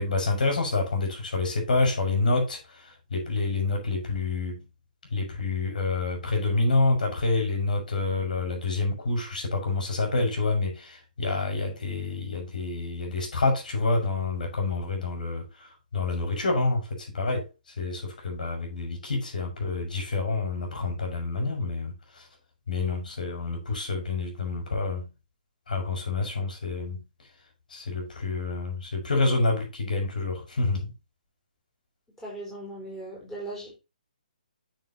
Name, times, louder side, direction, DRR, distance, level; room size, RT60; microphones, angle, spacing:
voice 1, 0.0-4.6 5.1-17.5 17.8-22.3 22.7-25.1 25.7-27.0 27.7-30.9, left 3 dB, 70° left, 6.2 m, -28 dB
voice 2, 32.2-33.8, right 1 dB, 5° left, 4.7 m, -38 dB
9.8 x 7.1 x 3.0 m
hypercardioid pair, 165°, 5 cm